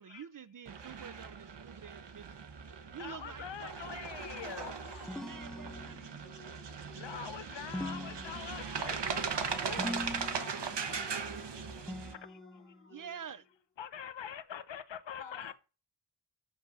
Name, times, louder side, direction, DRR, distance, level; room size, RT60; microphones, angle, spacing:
voice 1, 0.0-2.4 2.9-4.1 5.2-6.4 7.1-7.3 9.7-10.1 12.9-13.4, right 7 dB, 45° right, 0.6 m, -48 dB
sound 1, 0.7-12.1, right 6 dB, 65° right, 1.0 m, -39 dB
voice 2, 3.0-4.8 7.0-9.0 9.7-10.2 11.6-12.7 13.8-15.5, left 9 dB, 70° left, 0.8 m, -44 dB
voice 3, 4.2-5.5 8.3-11.4 15.2-15.5, left 5 dB, 90° left, 1.5 m, -52 dB
sound 2, 4.2-13.6, left 4 dB, 30° left, 1.1 m, -58 dB
sound 3, 5.1-6.3 7.7-8.9 9.8-10.7 11.9-12.8, left 1 dB, ahead, 0.5 m, -42 dB
6.2 x 5.2 x 6.3 m
wide cardioid pair, 75°, 45 cm